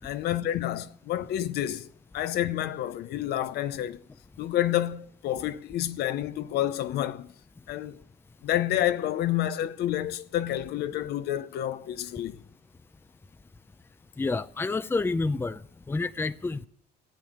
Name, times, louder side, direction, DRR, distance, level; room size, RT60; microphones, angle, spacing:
voice 1, 0.0-1.9 2.1-4.0 4.4-7.3 7.7-8.0 8.4-12.4, left 12 dB, 75° left, 0.8 m, -29 dB
voice 2, 14.2-15.6 15.9-16.7, left 3 dB, 15° left, 0.5 m, -28 dB
14.5 x 8.4 x 8.0 m
cardioid pair, 110°, 17 cm